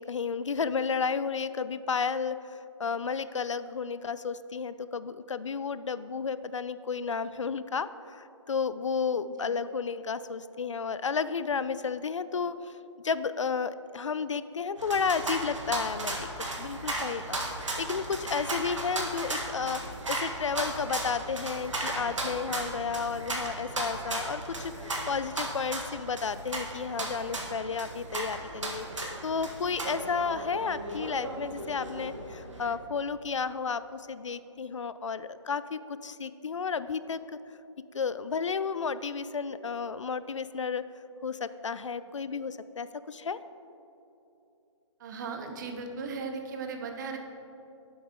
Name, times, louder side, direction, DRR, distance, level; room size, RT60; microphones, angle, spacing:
voice 1, 0.0-12.7 13.0-19.8 20.1-37.4 37.9-40.9 41.2-43.4, left 5 dB, 75° left, 14 dB, 0.4 m, -32 dB
sound 1, 14.8-32.7, right 1 dB, 75° right, 1.7 m, -36 dB
voice 2, 45.0-47.2, right 4 dB, 40° right, 4 dB, 1.0 m, -37 dB
10.5 x 7.8 x 3.6 m, 2.8 s
figure-of-eight pair, 135°, 16 cm